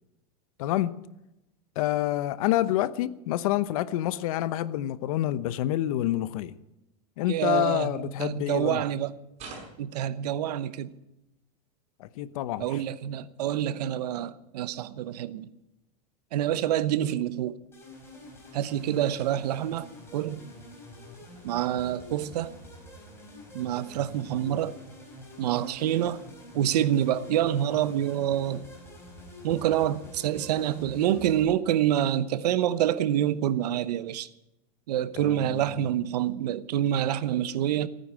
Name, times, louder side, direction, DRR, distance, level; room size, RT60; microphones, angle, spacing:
voice 1, 0.6-1.0 1.7-6.6 7.2-8.8 12.0-12.8 35.1-35.9, left 13 dB, 60° left, 0.9 m, -28 dB
voice 2, 7.3-9.1 9.8-11.0 12.6-15.5 16.3-17.6 18.5-20.5 21.4-22.5 23.5-24.7 25.4-26.2 26.5-28.7 29.4-34.3 34.9-37.9, right 11 dB, 80° right, 0.9 m, -27 dB
sound 1, 9.4-10.0 13.2-13.3, right 4 dB, 30° right, 5.6 m, -43 dB
sound 2, 17.7-31.4, left 1 dB, 10° left, 4.6 m, -47 dB
16.5 x 9.6 x 8.6 m
supercardioid pair, 155°, 20 cm